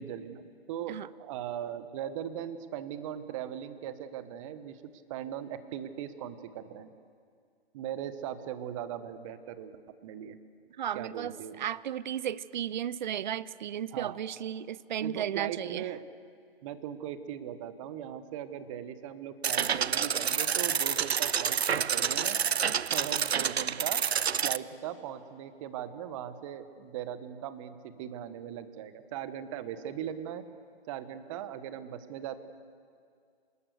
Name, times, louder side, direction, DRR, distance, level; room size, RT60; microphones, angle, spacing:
voice 1, 0.0-4.8 5.1-6.9 7.7-9.7 10.0-10.4 10.9-11.5 13.9-14.2 15.0-16.1 16.6-22.4 22.9-24.0 24.4-30.4 30.9-32.4, right 10 dB, 30° right, 11 dB, 1.4 m, -39 dB
voice 2, 10.8-15.9, right 10 dB, 45° right, 20 dB, 0.7 m, -34 dB
sound 1, 19.4-24.6, right 7 dB, 80° right, 0.7 m, -28 dB
27.0 x 20.0 x 6.6 m, 2.2 s
figure-of-eight pair, 135°, 31 cm